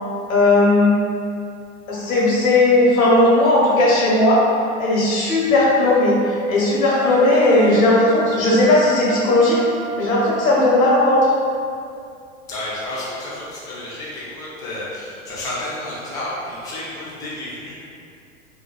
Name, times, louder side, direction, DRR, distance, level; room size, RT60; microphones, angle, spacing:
voice 1, 0.3-1.0 1.9-4.4 4.8-9.6 10.0-11.2, left 2 dB, 80° left, -6 dB, 0.9 m, -16 dB
sound 1, 6.8-10.9, right 2 dB, 85° right, 0.9 m, -33 dB
voice 2, 12.5-17.8, left 1 dB, 10° left, -8 dB, 0.3 m, -31 dB
2.6 x 2.2 x 2.3 m, 2.4 s
hypercardioid pair, 95°, 41 cm